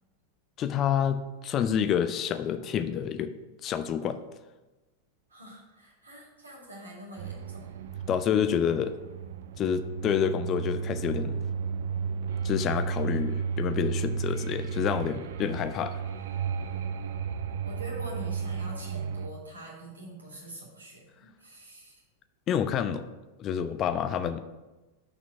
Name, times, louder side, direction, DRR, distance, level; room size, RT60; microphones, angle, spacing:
voice 1, 0.6-3.3 3.6-4.2 8.1-8.9 9.6-11.4 12.4-16.0 22.5-23.0 23.4-24.4, left 8 dB, 30° left, 10 dB, 0.4 m, -28 dB
voice 2, 5.3-7.7 17.6-22.0, right 1 dB, 75° right, -2 dB, 2.0 m, -44 dB
sound 1, 7.2-19.3, right 6 dB, 60° right, 0.4 m, -33 dB
6.1 x 4.5 x 6.0 m, 1.1 s
figure-of-eight pair, 90°, 0 cm